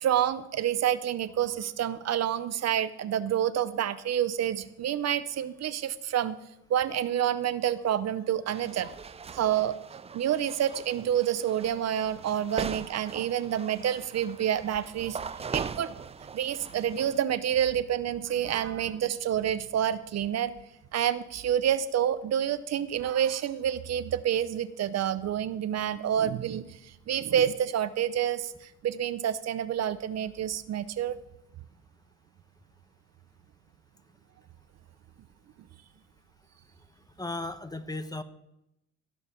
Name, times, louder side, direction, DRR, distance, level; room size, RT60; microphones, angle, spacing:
voice 1, 0.0-6.4 6.7-8.9 9.3-9.8 10.1-15.2 15.5-15.9 16.3-20.5 20.9-31.2, right 10 dB, 60° right, 14 dB, 0.7 m, -28 dB
sound 1, 8.5-17.2, right 6 dB, 20° right, 0.4 m, -41 dB
voice 2, 37.2-38.2, left 2 dB, 15° left, 11 dB, 0.9 m, -35 dB
15.5 x 5.5 x 6.9 m, 0.86 s
cardioid pair, 90°, 30 cm